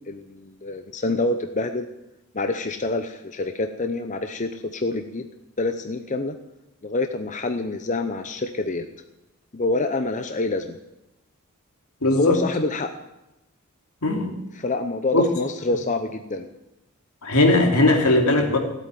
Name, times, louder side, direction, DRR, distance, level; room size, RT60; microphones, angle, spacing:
voice 1, 0.0-1.9 2.3-5.2 5.6-6.3 6.8-8.9 9.5-10.8 12.1-12.9 14.5-16.5, left 2 dB, 35° left, 7 dB, 0.8 m, -26 dB
voice 2, 12.0-12.4 14.0-14.4 15.1-15.3 17.2-18.6, left 2 dB, 80° left, 2 dB, 2.9 m, -18 dB
16.5 x 8.6 x 9.3 m, 0.93 s
head